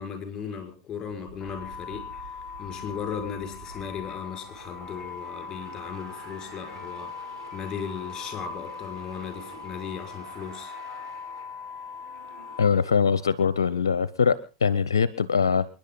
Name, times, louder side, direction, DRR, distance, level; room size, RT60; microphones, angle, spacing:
voice 1, 0.0-2.2 2.6-7.1 7.5-10.7, left 7 dB, 25° left, 5.5 m, -36 dB
sound 1, 1.1-13.7 14.0-14.4, right 4 dB, 85° right, 3.9 m, -48 dB
sound 2, 1.4-12.7, left 6 dB, 10° left, 1.7 m, -41 dB
voice 2, 12.6-14.4 14.6-15.7, left 6 dB, 75° left, 0.7 m, -22 dB
28.0 x 10.5 x 3.9 m
figure-of-eight pair, 90°, 2 cm